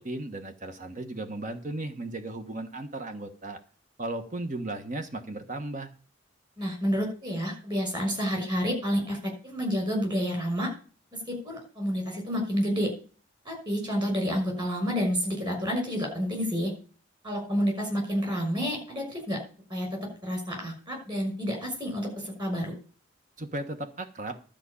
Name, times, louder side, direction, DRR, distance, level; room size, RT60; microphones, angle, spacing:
voice 1, 0.0-3.6 4.0-5.9 23.4-24.4, right 2 dB, 40° right, 7 dB, 1.3 m, -35 dB
voice 2, 6.6-10.7 11.1-12.9 13.4-16.7 17.2-19.4 19.7-22.7, equal, 25° right, 2 dB, 6.0 m, -29 dB
12.5 x 5.0 x 8.5 m, 0.38 s
head